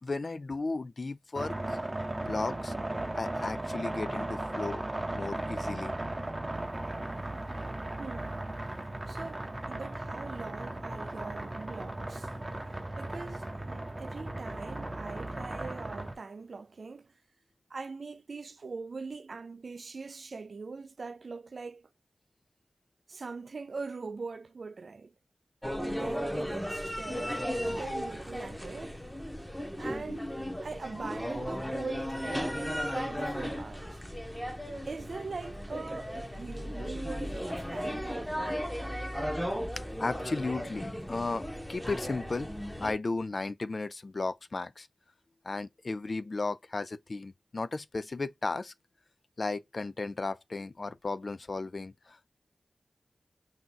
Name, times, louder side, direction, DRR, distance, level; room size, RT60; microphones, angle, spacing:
voice 1, 0.0-2.7 3.1-4.9 5.1-5.9 13.8-13.9 39.8-44.9 45.4-48.7 49.4-52.3, left 3 dB, 55° left, 0.3 m, -35 dB
sound 1, 1.4-16.2, right 1 dB, 30° right, 0.7 m, -36 dB
voice 2, 8.0-8.4 9.1-12.3 13.0-17.1 17.7-21.9 23.1-25.1 25.8-29.0 29.8-30.3 30.6-34.0 34.8-38.7, right 4 dB, 70° right, 0.4 m, -42 dB
sound 2, 25.6-42.9, equal, 5° left, 0.8 m, -36 dB
2.7 x 2.4 x 3.8 m
cardioid pair, 55°, 0 cm